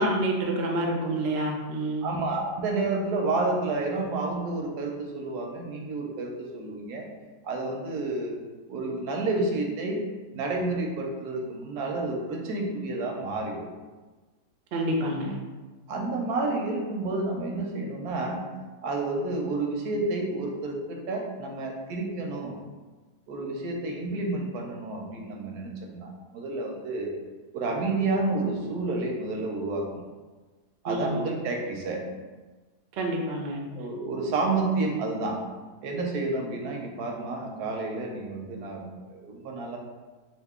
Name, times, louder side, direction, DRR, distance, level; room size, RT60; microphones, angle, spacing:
voice 1, 0.0-2.1 14.7-15.4 30.9-31.2 32.9-33.6, right 1 dB, 65° right, 0 dB, 0.6 m, -28 dB
voice 2, 2.0-7.1 7.4-8.4 8.7-10.0 10.3-13.7 15.9-18.4 18.8-22.6 23.3-27.1 27.5-30.0 30.8-32.0 33.7-35.4 35.8-39.8, right 2 dB, 80° right, 0 dB, 1.1 m, -30 dB
2.8 x 2.5 x 3.5 m, 1.3 s
omnidirectional pair, 1.7 m